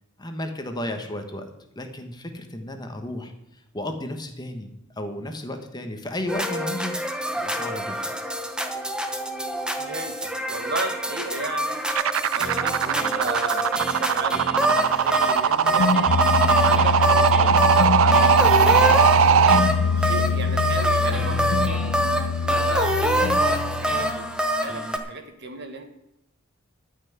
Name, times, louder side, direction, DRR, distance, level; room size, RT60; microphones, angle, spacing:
voice 1, 0.2-4.7 5.0-6.9 7.3-8.1, left 1 dB, 20° left, 5 dB, 1.3 m, -33 dB
sound 1, 6.3-25.0, right 1 dB, 5° right, 1.0 m, -26 dB
voice 2, 9.8-11.8 12.3-16.1 16.6-18.9 20.0-21.8 22.4-25.9, right 2 dB, 55° right, 5 dB, 1.7 m, -34 dB
sound 2, 11.9-19.6, right 8 dB, 75° right, 0.4 m, -19 dB
sound 3, 15.6-24.4, left 6 dB, 70° left, 0.4 m, -25 dB
13.0 x 5.8 x 9.5 m, 0.83 s
head